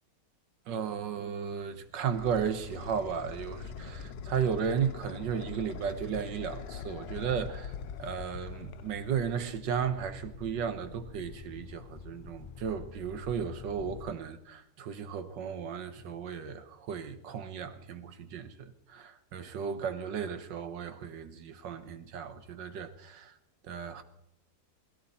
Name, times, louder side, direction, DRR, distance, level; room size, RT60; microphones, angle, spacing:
voice 1, 0.7-7.7 8.0-23.3 23.7-24.0, right 7 dB, 75° right, 1.8 m, -35 dB
sound 1, 1.5-9.5, left 7 dB, 80° left, 1.4 m, -44 dB
sound 2, 2.8-14.1, left 5 dB, 45° left, 0.7 m, -47 dB
20.5 x 16.5 x 4.3 m
omnidirectional pair, 1.9 m